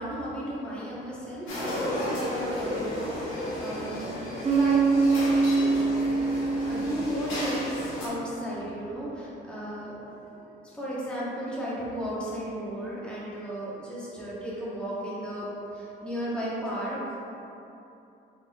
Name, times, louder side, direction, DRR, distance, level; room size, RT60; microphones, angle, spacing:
voice 1, 0.0-6.1 6.6-17.2, equal, 5° left, -8 dB, 1.0 m, -35 dB
sound 1, 1.5-8.1, left 1 dB, 80° left, 1.0 m, -33 dB
Bass guitar, 4.4-8.3, right 3 dB, 25° right, 0.5 m, -25 dB
3.7 x 3.2 x 2.3 m, 2.8 s
cardioid pair, 90°, 20 cm